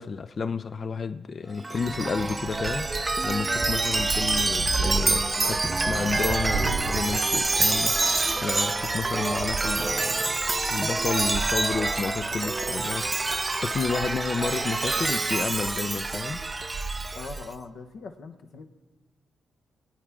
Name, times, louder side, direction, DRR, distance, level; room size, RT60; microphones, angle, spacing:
voice 1, 0.0-2.9 3.2-10.4 10.7-13.1 13.5-16.4, left 5 dB, 50° left, 0.6 m, -31 dB
Chime, 1.6-17.4, right 3 dB, 30° right, 0.5 m, -27 dB
sound 1, 2.0-17.5, right 4 dB, 80° right, 1.1 m, -37 dB
voice 2, 17.1-18.6, left 4 dB, 70° left, 1.2 m, -41 dB
22.5 x 9.1 x 3.7 m
hypercardioid pair, 45°, 0 cm